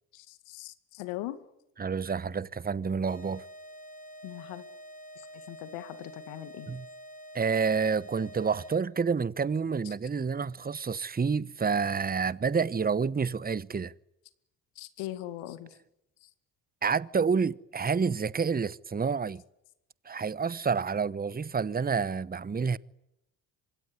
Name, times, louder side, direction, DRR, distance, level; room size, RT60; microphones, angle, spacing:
voice 1, 0.1-1.4 4.2-4.7 5.2-6.7 9.8-9.9 14.8-15.8 16.2-16.3, left 15 dB, 75° left, 2.2 m, -40 dB
voice 2, 1.8-3.4 6.7-6.8 7.3-13.9 16.8-19.4 20.0-22.8, right 5 dB, 20° right, 1.0 m, -29 dB
sound 1, 3.1-9.0, equal, 15° left, 6.4 m, -47 dB
25.5 x 22.5 x 10.0 m
hypercardioid pair, 55°, 47 cm